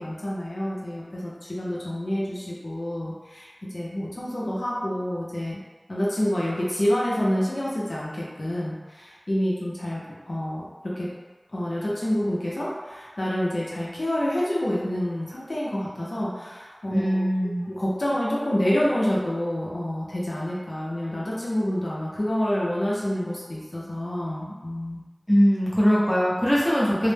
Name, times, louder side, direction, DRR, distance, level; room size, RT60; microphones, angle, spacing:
voice 1, 0.0-5.6 5.9-10.0 10.3-11.1 11.5-17.3 17.7-25.0, equal, 80° left, -6 dB, 0.5 m, -28 dB
voice 2, 16.9-17.6 25.3-27.1, equal, 15° left, -7 dB, 0.8 m, -21 dB
2.1 x 2.0 x 3.2 m, 1.3 s
wide cardioid pair, 45°, 0 cm